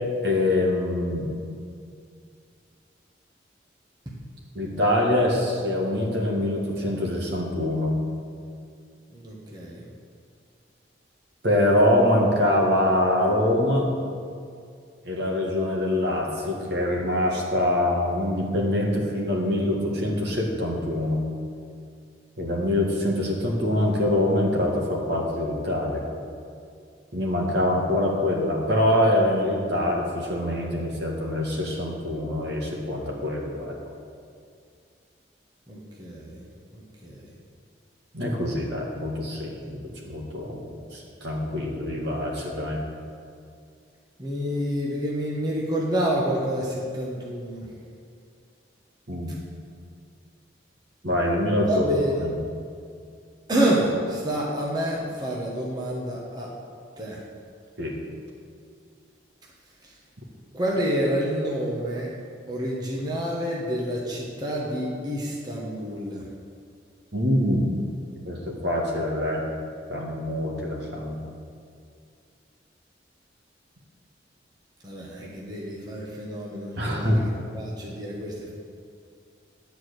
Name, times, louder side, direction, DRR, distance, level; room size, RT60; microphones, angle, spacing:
voice 1, 0.2-1.3 4.6-8.0 11.4-13.9 15.0-21.2 22.4-26.0 27.1-33.8 38.1-42.8 49.1-49.3 51.0-51.8 52.2-52.4 57.8-58.0 67.1-67.7 68.3-69.4 69.9-71.2 76.8-77.2, left 1 dB, 65° right, -2 dB, 1.9 m, -24 dB
voice 2, 9.1-9.9 35.7-36.4 36.7-37.3 44.2-47.7 51.7-52.2 53.5-56.5 57.0-57.2 59.8-59.9 60.5-62.1 62.5-66.3 74.8-78.5, equal, 20° right, -4 dB, 1.3 m, -28 dB
11.0 x 4.7 x 8.1 m, 2.3 s
head